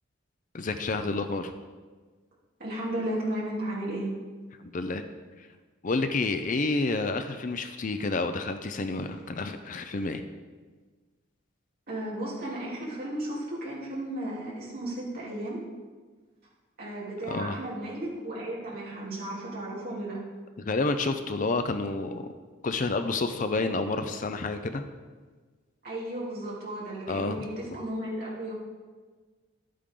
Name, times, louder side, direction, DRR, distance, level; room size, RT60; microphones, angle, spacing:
voice 1, 0.5-1.5 4.7-5.1 5.8-10.2 17.3-17.6 20.6-22.3 22.6-24.9 27.1-27.4, left 3 dB, 40° left, 8 dB, 0.5 m, -29 dB
voice 2, 2.6-4.1 11.9-15.6 16.8-20.2 25.8-28.5, right 1 dB, 45° right, -6 dB, 3.1 m, -34 dB
11.5 x 8.5 x 3.8 m, 1.4 s
head